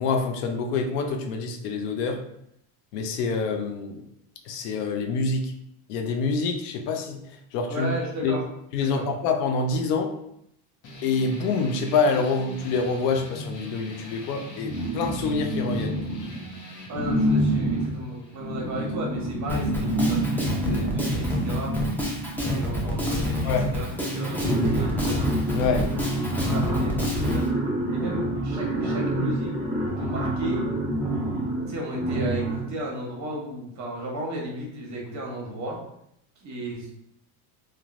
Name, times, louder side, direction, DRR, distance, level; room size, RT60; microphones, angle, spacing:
voice 1, 0.0-2.2 2.9-4.0 4.5-5.5 5.9-7.2 7.5-7.9 8.2-8.3 8.7-10.1 11.0-16.0 23.4-23.7 25.5-25.9, left 4 dB, 85° left, 5 dB, 0.6 m, -26 dB
voice 2, 7.7-8.4 8.8-9.0 16.9-21.7 22.4-25.2 25.7-26.0 26.4-27.5 27.9-29.6 30.0-30.7 31.7-35.8 36.4-36.9, right 1 dB, 40° right, -2 dB, 1.0 m, -34 dB
sound 1, 10.8-19.9, left 1 dB, 40° left, 0.8 m, -43 dB
sound 2, 14.6-16.4 16.9-22.6 23.5-23.6 23.9-32.8, right 1 dB, 10° right, 0.9 m, -27 dB
Drum kit, 19.5-27.4, left 1 dB, 5° left, 0.4 m, -28 dB
3.1 x 2.3 x 2.5 m, 0.76 s
supercardioid pair, 110°, 45 cm